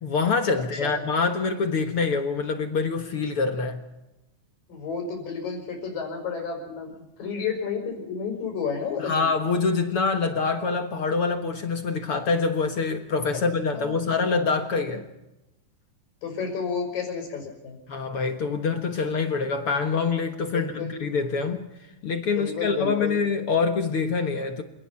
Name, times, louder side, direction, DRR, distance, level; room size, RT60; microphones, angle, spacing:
voice 1, 0.0-3.8 9.0-15.1 17.9-21.7 22.0-24.6, left 4 dB, 55° left, 1.8 m, -25 dB
voice 2, 4.7-6.9 7.2-9.3 13.3-13.4 13.7-14.4 14.6-14.8 16.2-17.8 20.5-20.9 22.3-23.2, left 5 dB, 80° left, 6.8 m, -31 dB
28.0 x 18.5 x 5.7 m
omnidirectional pair, 3.9 m